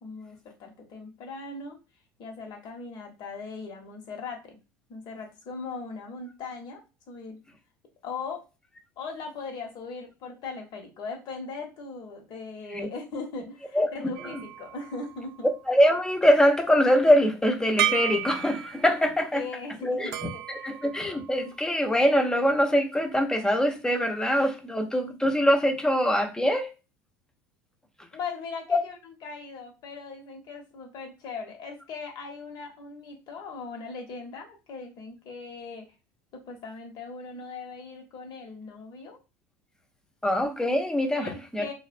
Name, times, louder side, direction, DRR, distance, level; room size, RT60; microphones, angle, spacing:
voice 1, 0.0-1.8 2.2-4.6 4.9-6.8 7.1-7.4 8.0-8.4 9.0-15.5 19.3-20.7 28.1-35.9 36.3-39.2 41.2-41.7, left 4 dB, 50° left, 0.9 m, -39 dB
sound 1, 14.1-15.8 17.8-19.0 20.1-21.6, right 12 dB, 60° right, 0.4 m, -33 dB
voice 2, 15.7-19.4 19.8-20.1 20.5-26.7 40.2-41.6, equal, 5° left, 0.6 m, -23 dB
2.3 x 2.1 x 2.5 m
hypercardioid pair, 75°, 9 cm